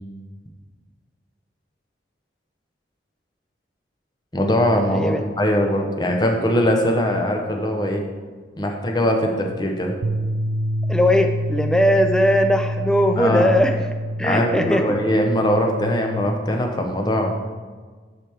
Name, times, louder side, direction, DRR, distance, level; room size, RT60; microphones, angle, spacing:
voice 1, 4.3-8.0 8.6-9.9 13.2-13.5 14.2-17.3, equal, 25° left, 3 dB, 0.8 m, -21 dB
voice 2, 4.9-5.2 10.9-13.9 14.2-15.0, equal, 5° left, 6 dB, 0.4 m, -19 dB
sound 1, 10.0-16.3, equal, 75° right, 0.4 m, -27 dB
10.5 x 4.5 x 3.5 m, 1.5 s
head